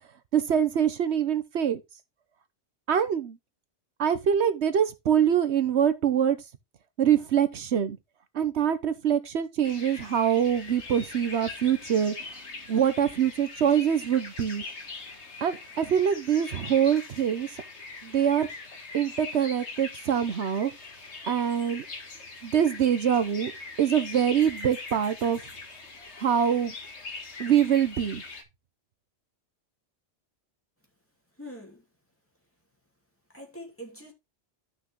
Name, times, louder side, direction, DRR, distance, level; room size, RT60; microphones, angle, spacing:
voice 1, 0.3-1.8 2.9-3.4 4.0-6.4 7.0-8.0 8.3-12.1 12.7-14.6 15.4-17.5 18.0-18.5 18.9-20.7 21.3-21.8 22.4-23.5 23.8-25.4 26.2-26.7 27.4-28.2, right 8 dB, 75° right, 1.2 m, -24 dB
sound 1, 9.6-28.4, left 3 dB, 85° left, 2.0 m, -42 dB
voice 2, 31.4-31.8 33.3-34.1, equal, 10° left, 2.7 m, -43 dB
12.5 x 6.1 x 3.1 m
omnidirectional pair, 1.1 m